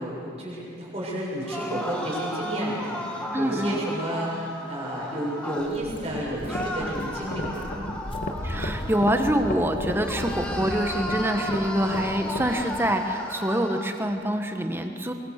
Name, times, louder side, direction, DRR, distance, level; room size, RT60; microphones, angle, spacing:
voice 1, 0.0-7.7, right 1 dB, 35° right, -4 dB, 6.8 m, -31 dB
sound 1, 1.4-5.7 6.5-9.6 10.0-13.9, equal, 5° left, 2.0 m, -35 dB
voice 2, 3.3-3.8 8.4-15.1, right 1 dB, 15° right, 5 dB, 1.4 m, -25 dB
Walk footsteps, 5.6-12.6, left 1 dB, 30° left, 1.0 m, -39 dB
sound 2, 6.0-12.6, left 1 dB, 50° left, 2.0 m, -34 dB
23.5 x 22.5 x 6.7 m, 2.5 s
head